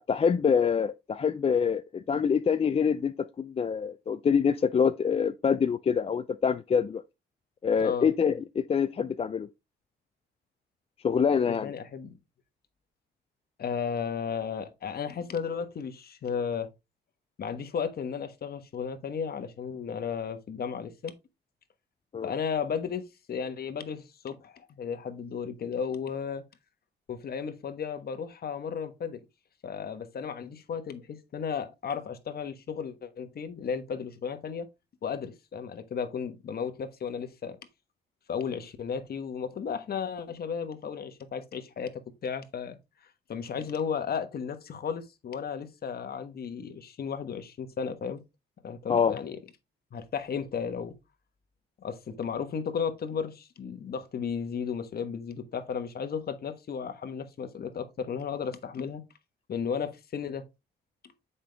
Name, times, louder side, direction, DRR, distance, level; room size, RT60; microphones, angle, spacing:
voice 1, 0.0-7.0 7.6-9.5 11.0-11.7 22.1-22.3 48.9-49.1, left 6 dB, 30° left, 0.4 m, -25 dB
voice 2, 11.4-12.1 13.6-16.7 17.4-21.1 22.2-23.0 23.3-26.4 27.1-29.2 29.6-34.7 35.0-37.6 38.3-42.8 43.3-48.2 48.6-49.4 49.9-50.9 51.8-59.0 59.5-60.4, left 6 dB, 50° left, 1.2 m, -34 dB
7.3 x 5.4 x 3.4 m
cardioid pair, 90°, 20 cm